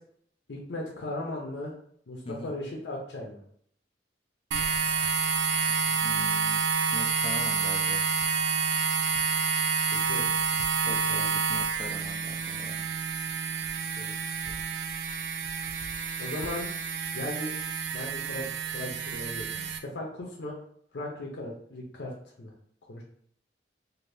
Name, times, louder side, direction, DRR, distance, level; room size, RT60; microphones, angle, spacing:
voice 1, 0.5-1.7 2.1-3.4 10.0-10.3 10.8-11.4 14.0-14.2 14.5-14.6 16.2-16.7 17.1-17.5 17.9-20.6 20.9-22.1 22.4-22.5 22.9-23.0, left 1 dB, 85° left, -1 dB, 0.6 m, -37 dB
sound 1, 4.5-19.8, right 5 dB, 85° right, 0.3 m, -29 dB
voice 2, 5.7-8.0 10.8-12.9, left 2 dB, 30° left, 4 dB, 0.3 m, -42 dB
2.6 x 2.6 x 3.3 m, 0.63 s
head